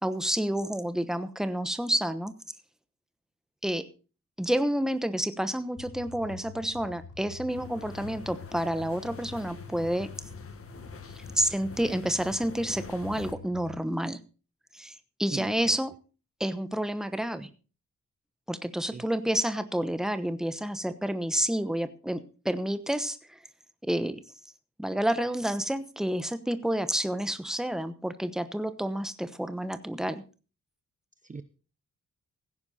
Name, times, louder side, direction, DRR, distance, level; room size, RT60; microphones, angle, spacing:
voice 1, 0.0-2.3 3.6-3.8 4.4-10.1 11.1-14.2 14.7-15.9 16.4-17.5 18.5-23.4 23.8-24.2 24.8-30.2, right 1 dB, ahead, 11 dB, 1.0 m, -29 dB
sound 1, 5.8-13.8, left 5 dB, 85° left, 6.3 m, -47 dB
sound 2, 7.5-13.3, left 4 dB, 45° left, 1.7 m, -45 dB
voice 2, 15.3-15.8 18.9-19.1 31.2-31.4, right 4 dB, 25° right, 12 dB, 0.7 m, -40 dB
16.0 x 9.9 x 4.2 m, 0.36 s
wide cardioid pair, 110°, 31 cm